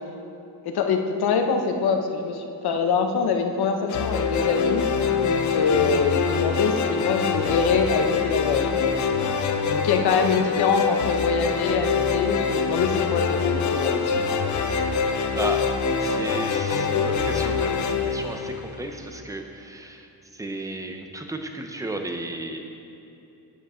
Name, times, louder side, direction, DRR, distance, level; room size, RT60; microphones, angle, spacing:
voice 1, 0.6-4.9 5.2-8.9 9.7-14.1, left 5 dB, 70° left, 4 dB, 0.9 m, -24 dB
sound 1, 3.9-19.2, left 5 dB, 45° left, 0.6 m, -24 dB
voice 2, 9.9-10.3 14.7-14.9 15.4-15.7 16.0-22.6, right 2 dB, 10° right, 4 dB, 0.5 m, -34 dB
9.3 x 7.1 x 3.7 m, 2.9 s
cardioid pair, 140°, 40 cm